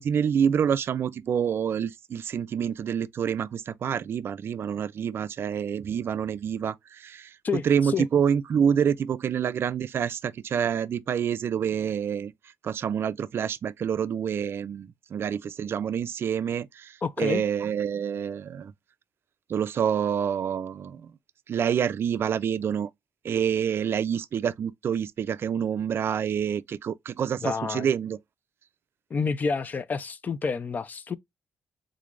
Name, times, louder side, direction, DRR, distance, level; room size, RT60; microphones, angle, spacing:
voice 1, 0.0-7.3 7.6-12.3 12.6-16.9 17.2-18.7 19.5-21.1 21.5-22.9 23.2-28.2, right 8 dB, 50° right, 0.4 m, -27 dB
voice 2, 7.4-8.1 17.0-17.4 27.4-27.9 29.1-31.2, left 5 dB, 35° left, 0.4 m, -29 dB
3.8 x 3.2 x 2.4 m
cardioid pair, 135°, 5 cm